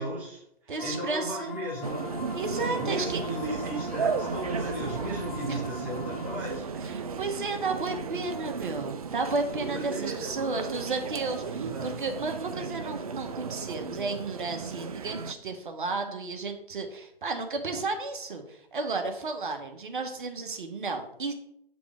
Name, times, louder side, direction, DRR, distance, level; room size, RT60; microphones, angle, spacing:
voice 1, 0.0-2.1 2.8-6.7 9.7-10.8 11.4-12.0, right 1 dB, 5° right, -5 dB, 1.0 m, -36 dB
voice 2, 0.7-1.5 2.3-3.2 5.5-5.6 6.8-21.3, right 3 dB, 55° right, 5 dB, 1.3 m, -33 dB
sound 1, 0.8-6.6, left 6 dB, 55° left, 2.5 m, -41 dB
sound 2, 1.8-15.3, right 5 dB, 40° right, 0.5 m, -35 dB
8.6 x 5.1 x 3.4 m, 0.74 s
figure-of-eight pair, 140°, 31 cm